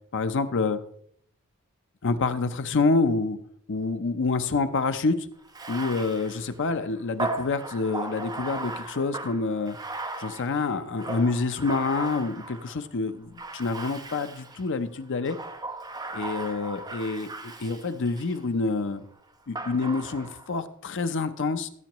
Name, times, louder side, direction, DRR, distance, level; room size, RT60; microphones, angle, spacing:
voice 1, 0.1-0.8 2.0-3.4 3.7-5.3 5.7-9.8 10.2-15.4 16.1-19.0 19.5-21.7, left 3 dB, 60° left, 10 dB, 0.6 m, -27 dB
Bathtub (filling or washing), 5.4-12.8 13.4-14.7 15.2-18.4 19.6-20.5, right 2 dB, 20° right, 0.8 m, -37 dB
15.0 x 8.2 x 3.0 m, 0.65 s
head